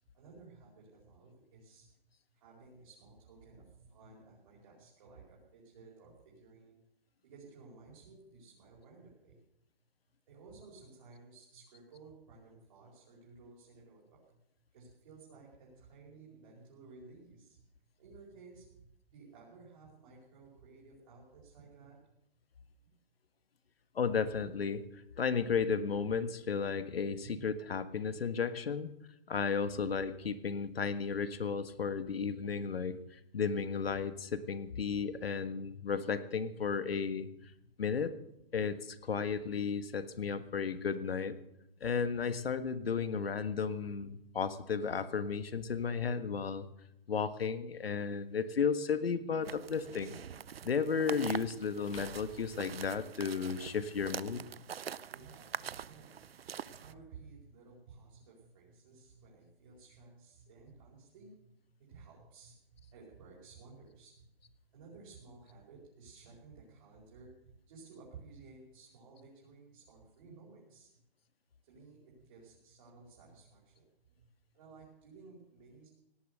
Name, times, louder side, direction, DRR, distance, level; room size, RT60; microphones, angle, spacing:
voice 1, 0.1-1.9 2.3-6.8 7.2-9.4 10.3-14.4 14.7-17.6 18.0-22.0 27.2-27.3 37.1-37.2 37.6-37.7 55.1-64.5 64.7-70.9 71.6-74.3 74.5-75.9, right 4 dB, 35° right, -5 dB, 5.0 m, -56 dB
voice 2, 23.9-24.8 25.2-28.9 29.3-37.3 37.8-38.1 38.5-41.3 41.8-46.6 47.1-50.2 50.6-54.4, left 6 dB, 75° left, 12 dB, 1.6 m, -34 dB
sound 1, 48.0-48.1 50.7-50.8 51.9-53.5, left 3 dB, 35° left, 2.0 m, -54 dB
sound 2, 49.4-56.9, right 8 dB, 80° right, 0.7 m, -44 dB
18.0 x 12.0 x 6.7 m, 0.80 s
hypercardioid pair, 170°, 30 cm